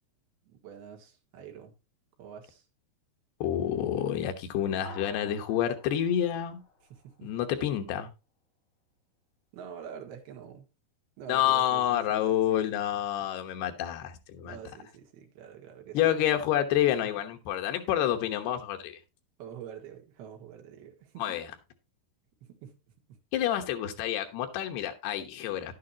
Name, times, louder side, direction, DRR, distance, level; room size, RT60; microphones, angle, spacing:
voice 1, 0.4-1.7 2.2-2.7 6.9-7.3 9.5-10.7 11.2-12.8 13.2-13.3 14.4-16.0 19.4-21.3 22.4-22.8 23.1-23.2, right 8 dB, 75° right, 3.7 m, -46 dB
voice 2, 3.4-6.6 7.2-8.1 11.3-14.6 15.9-19.0 21.2-21.5 23.3-25.7, left 11 dB, 85° left, 3.3 m, -28 dB
sound 1, 4.8-7.5, left 2 dB, 35° left, 6.4 m, -50 dB
11.5 x 9.4 x 2.9 m
omnidirectional pair, 4.6 m